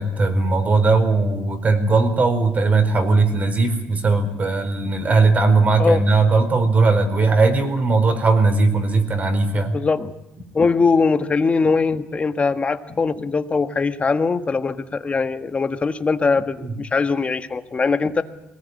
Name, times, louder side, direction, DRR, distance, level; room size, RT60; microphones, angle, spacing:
voice 1, 0.0-9.7 16.6-16.7, right 3 dB, 35° right, 7 dB, 4.5 m, -18 dB
voice 2, 9.7-10.1 10.5-18.2, left 4 dB, 25° left, 9 dB, 1.6 m, -21 dB
22.5 x 18.5 x 9.7 m, 0.91 s
cardioid pair, 110°, 5 cm